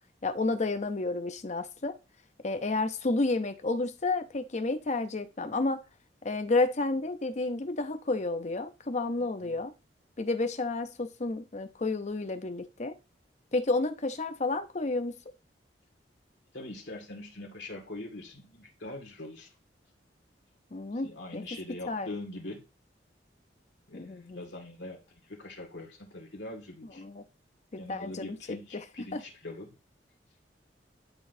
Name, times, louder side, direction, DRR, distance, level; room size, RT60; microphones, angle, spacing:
voice 1, 0.2-2.0 2.4-5.8 6.2-9.7 10.2-13.0 13.5-15.1 20.7-21.4 21.9-22.1 23.9-24.4 27.0-27.2 27.7-28.4 28.7-28.8 29.1-29.2, left 3 dB, 40° left, 0.7 m, -31 dB
voice 2, 16.5-19.5 21.0-22.6 23.9-27.0 27.8-29.7, left 2 dB, 80° left, 1.9 m, -42 dB
11.0 x 4.0 x 2.7 m
head